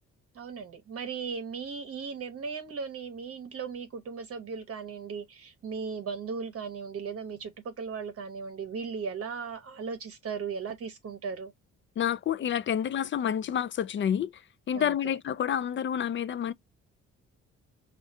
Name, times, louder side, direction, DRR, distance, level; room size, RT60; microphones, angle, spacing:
voice 1, 0.3-11.5 14.7-15.2, right 5 dB, 50° right, 0.9 m, -37 dB
voice 2, 12.0-14.3 14.7-16.5, left 9 dB, 40° left, 0.4 m, -29 dB
4.7 x 2.4 x 2.6 m
cardioid pair, 90°, 30 cm